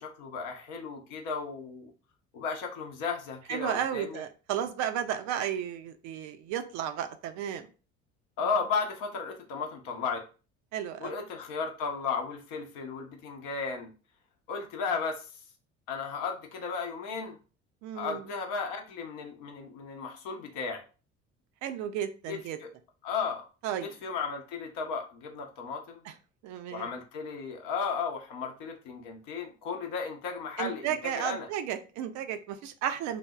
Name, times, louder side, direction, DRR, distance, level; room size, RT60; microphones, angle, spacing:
voice 1, 0.0-1.9 2.3-4.2 8.4-10.2 11.0-13.9 14.5-15.3 15.9-17.4 17.9-20.8 22.3-22.7 23.0-23.4 23.8-26.0 26.7-31.5, left 5 dB, 55° left, 4 dB, 0.8 m, -34 dB
voice 2, 3.5-7.7 10.7-11.1 17.8-18.2 21.6-22.6 23.6-23.9 26.1-26.2 26.4-26.9 30.6-33.2, right 9 dB, 50° right, 8 dB, 0.4 m, -33 dB
3.3 x 2.0 x 2.3 m, 0.35 s
figure-of-eight pair, 60°, 38 cm